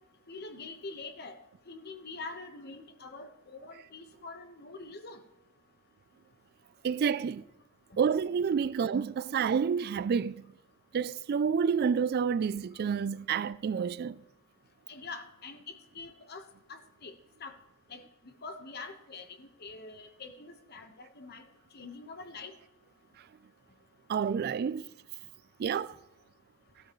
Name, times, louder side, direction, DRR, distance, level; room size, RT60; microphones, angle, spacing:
voice 1, 0.3-1.4 1.7-5.2 14.9-17.1 17.4-17.6 17.9-21.4 21.7-22.5, left 3 dB, 50° left, 1.3 m, -45 dB
voice 2, 6.8-7.4 8.0-10.4 10.9-14.2 24.1-24.9 25.6-26.0, right 6 dB, 50° right, 0.3 m, -29 dB
15.0 x 13.0 x 3.1 m
head